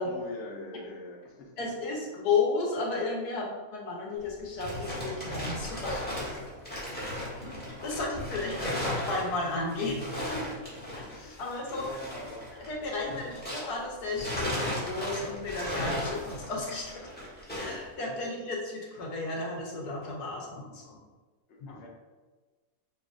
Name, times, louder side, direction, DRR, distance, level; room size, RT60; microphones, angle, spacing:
voice 1, 0.0-1.9 8.4-8.8 10.9-12.5 13.0-13.4 18.1-18.5 21.5-21.9, left 2 dB, 55° left, -2 dB, 1.0 m, -45 dB
voice 2, 1.6-6.6 7.8-10.4 10.9-11.0 11.4-12.0 12.7-17.0 17.5-21.0 21.6-21.8, left 3 dB, 90° left, -2 dB, 1.4 m, -33 dB
sound 1, 4.2-13.8 14.1-17.8, left 1 dB, 5° left, 1.1 m, -36 dB
5.4 x 2.9 x 2.5 m, 1.3 s
omnidirectional pair, 1.6 m